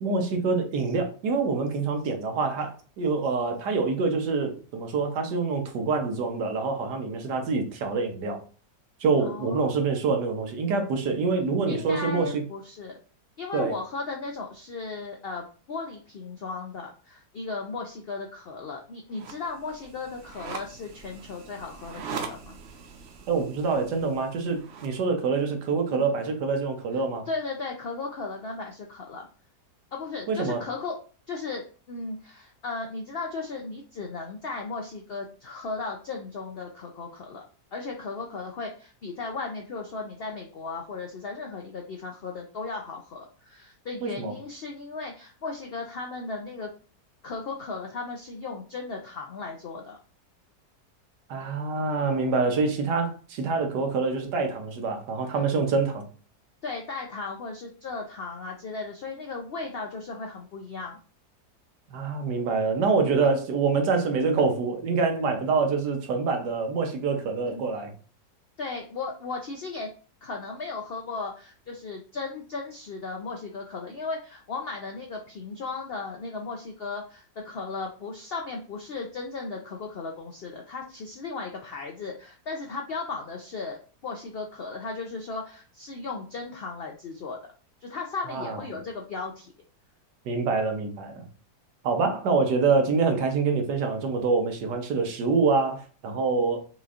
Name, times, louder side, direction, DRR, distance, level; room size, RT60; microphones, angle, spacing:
voice 1, 0.0-8.4 9.0-12.4 13.5-13.7 23.3-27.3 30.3-30.6 44.0-44.3 51.3-56.1 61.9-67.9 88.3-88.6 90.2-91.3 91.8-96.6, right 4 dB, 80° right, 4 dB, 1.5 m, -26 dB
voice 2, 9.2-10.3 11.7-13.0 13.4-22.6 25.9-26.0 27.3-29.3 29.9-31.0 31.3-37.4 37.7-46.7 47.2-50.0 56.6-61.0 67.5-67.6 68.6-69.9 70.2-87.4 87.8-89.5, left 4 dB, 70° left, 2 dB, 0.5 m, -36 dB
sound 1, 19.1-25.0, right 5 dB, 60° right, 0.7 m, -41 dB
5.8 x 3.1 x 2.5 m, 0.39 s
omnidirectional pair, 1.8 m